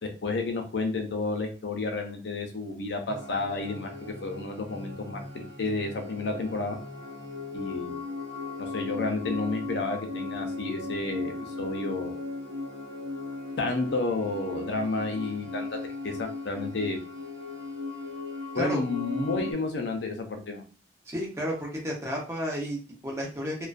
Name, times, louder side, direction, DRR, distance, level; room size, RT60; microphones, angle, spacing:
voice 1, 0.0-6.8 7.5-8.0 8.7-11.3 11.6-12.2 13.6-15.8 16.0-17.0 18.5-20.6, left 3 dB, 65° left, 4 dB, 0.5 m, -31 dB
sound 1, 3.1-19.5, left 3 dB, 65° right, 0.7 m, -37 dB
voice 2, 21.1-23.6, equal, 15° right, -2 dB, 0.7 m, -32 dB
2.4 x 2.2 x 2.4 m, 0.36 s
head